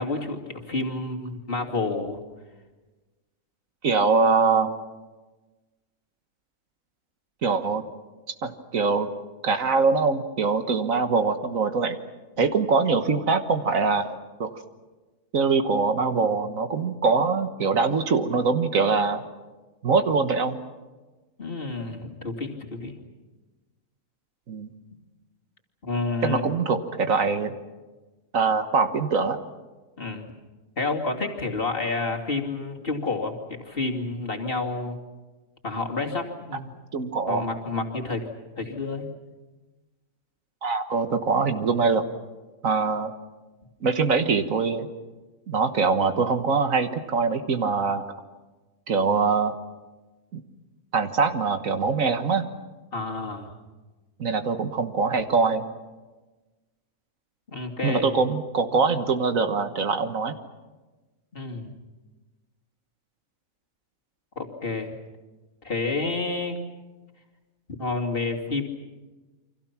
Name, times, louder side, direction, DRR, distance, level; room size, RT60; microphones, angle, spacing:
voice 1, 0.0-2.2 12.4-12.5 21.4-22.9 25.8-26.5 30.0-30.3 30.8-35.0 35.6-36.7 37.3-38.3 38.6-39.1 52.9-53.5 57.5-58.1 61.3-61.7 64.4-64.9 65.6-66.6 67.8-68.6, left 3 dB, 40° left, 1 dB, 2.8 m, -29 dB
voice 2, 3.8-4.7 7.4-7.8 8.4-9.1 9.4-12.0 12.4-14.6 15.3-19.2 19.8-20.6 24.5-24.7 26.2-27.5 28.3-29.4 36.9-37.5 40.6-42.0 42.6-43.1 43.8-44.9 45.5-48.0 48.9-49.5 50.3-50.4 50.9-52.5 54.2-55.6 57.8-60.4, right 4 dB, 65° right, 8 dB, 1.7 m, -23 dB
29.5 x 25.0 x 6.0 m, 1.2 s
omnidirectional pair, 1.5 m